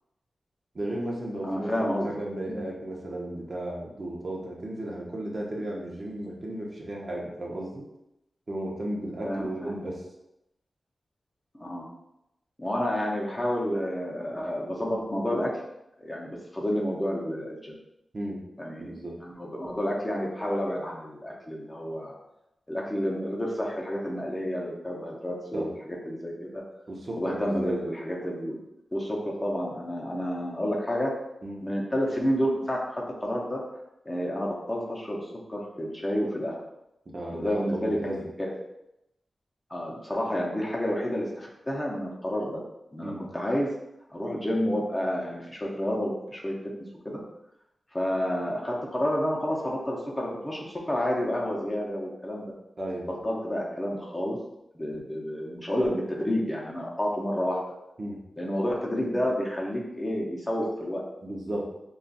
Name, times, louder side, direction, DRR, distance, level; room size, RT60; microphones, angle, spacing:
voice 1, 0.7-7.8 8.5-10.0 18.1-18.4 18.8-19.2 25.5-25.7 26.9-27.8 31.4-31.6 37.1-38.2 43.0-43.2 52.8-53.1 58.0-58.2 61.2-61.7, right 1 dB, 50° right, -3 dB, 0.7 m, -34 dB
voice 2, 1.4-2.1 2.5-2.6 9.2-9.7 11.6-11.9 12.6-15.6 16.0-17.7 18.6-22.2 22.7-26.6 27.2-28.6 28.9-31.1 31.6-33.6 34.0-35.2 35.5-36.6 37.3-38.5 39.7-42.6 42.9-43.7 44.1-46.6 47.0-47.2 47.9-52.5 53.2-54.4 54.7-57.6 58.4-61.0, equal, 20° left, -3 dB, 0.7 m, -30 dB
2.5 x 2.3 x 3.9 m, 0.87 s
wide cardioid pair, 80°, 0 cm